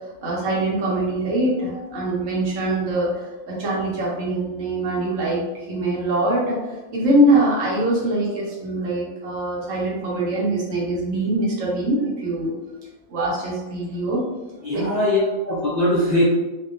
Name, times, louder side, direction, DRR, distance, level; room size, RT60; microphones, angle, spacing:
voice 1, 0.2-3.1 3.5-5.4 5.7-6.6 6.9-12.5 13.1-14.2 14.7-14.8, right 1 dB, 75° right, -5 dB, 1.1 m, -23 dB
voice 2, 14.6-16.2, left 1 dB, 55° left, -9 dB, 0.4 m, -21 dB
2.8 x 2.1 x 2.4 m, 1.1 s
omnidirectional pair, 1.4 m